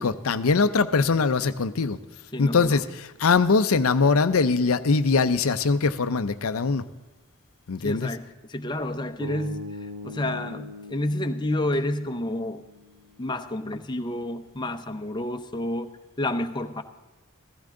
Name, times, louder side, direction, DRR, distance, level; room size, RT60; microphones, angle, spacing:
voice 1, 0.0-2.0 2.4-6.8 7.7-8.1, left 4 dB, 70° left, 11 dB, 0.6 m, -22 dB
voice 2, 2.3-2.8 7.8-12.6 13.2-15.9 16.2-16.8, left 1 dB, 20° left, 6 dB, 0.8 m, -30 dB
sound 1, 9.2-13.4, left 1 dB, 85° right, 1.9 m, -41 dB
15.5 x 15.0 x 3.8 m, 1.1 s
head